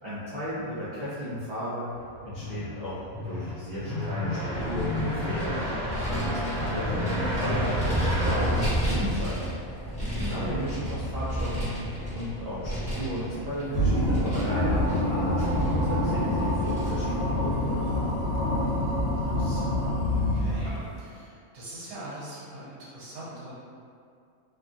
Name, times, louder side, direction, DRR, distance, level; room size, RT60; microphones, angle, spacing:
voice 1, 0.0-1.9 2.2-5.6 6.0-9.5 10.0-15.5 15.8-17.9, equal, 55° right, -12 dB, 0.4 m, -34 dB
sound 1, 2.0-9.6, left 1 dB, 35° left, 1.2 m, -32 dB
Vehicle, 4.5-17.8, equal, 5° left, 0.8 m, -32 dB
sound 2, 13.7-21.0, left 1 dB, 75° left, 1.0 m, -26 dB
voice 2, 19.2-23.5, right 1 dB, 80° right, -8 dB, 1.3 m, -43 dB
2.9 x 2.3 x 2.5 m, 2.3 s
omnidirectional pair, 1.5 m